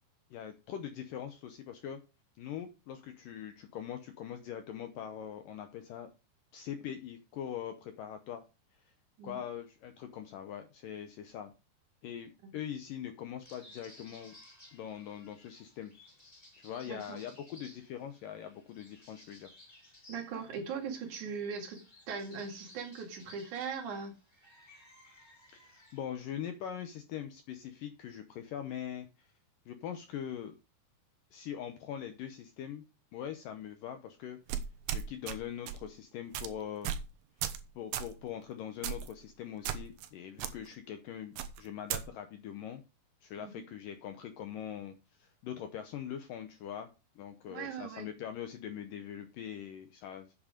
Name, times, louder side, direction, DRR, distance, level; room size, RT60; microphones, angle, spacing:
voice 1, 0.3-2.0 2.4-6.1 6.5-8.4 9.2-11.5 12.0-14.4 14.7-15.9 16.6-19.5 25.5-29.3 29.7-30.5 31.3-32.8 33.1-34.6 34.9-37.0 37.8-42.8 43.2-46.9 47.2-50.3, left 9 dB, 80° left, 7 dB, 2.0 m, -42 dB
sound 1, 13.4-26.0, left 1 dB, 10° left, 4.7 m, -58 dB
voice 2, 16.9-17.2 20.1-24.1 43.4-43.6 47.5-48.1, right 5 dB, 50° right, 3 dB, 3.2 m, -40 dB
sound 2, 34.5-35.4 35.7-35.9 36.3-36.5 36.8-37.1 37.4-37.6 37.9-38.1 38.8-39.1 39.6-40.1 40.4-40.5 41.4-42.0, right 10 dB, 80° right, 3.0 m, -35 dB
8.8 x 7.5 x 5.0 m, 0.30 s
omnidirectional pair, 4.9 m